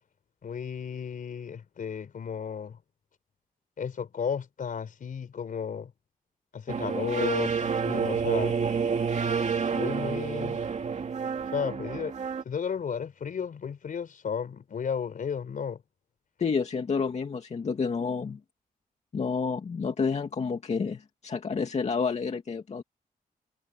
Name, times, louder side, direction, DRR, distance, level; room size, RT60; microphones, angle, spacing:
voice 1, 0.4-2.8 3.8-5.9 6.5-8.6 9.7-10.6 11.5-12.1 12.4-15.8, left 7 dB, 65° left, 4.4 m, -33 dB
sound 1, 6.7-12.4, right 6 dB, 50° right, 2.5 m, -29 dB
voice 2, 16.4-18.4 19.1-22.8, left 5 dB, 45° left, 2.4 m, -29 dB
wide cardioid pair, 125°, 15 cm